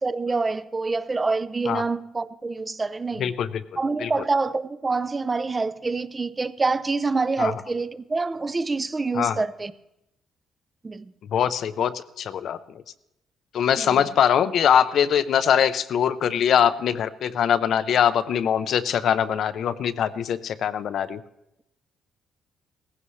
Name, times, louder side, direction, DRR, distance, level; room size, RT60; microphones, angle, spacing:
voice 1, 0.0-3.3 3.8-9.7 10.8-11.1 13.8-14.0, right 3 dB, 25° right, 0.6 m, -26 dB
voice 2, 11.3-11.9 12.2-12.6 13.5-21.2, left 8 dB, 70° left, 0.7 m, -22 dB
18.0 x 15.5 x 3.2 m
cardioid pair, 90°, 0 cm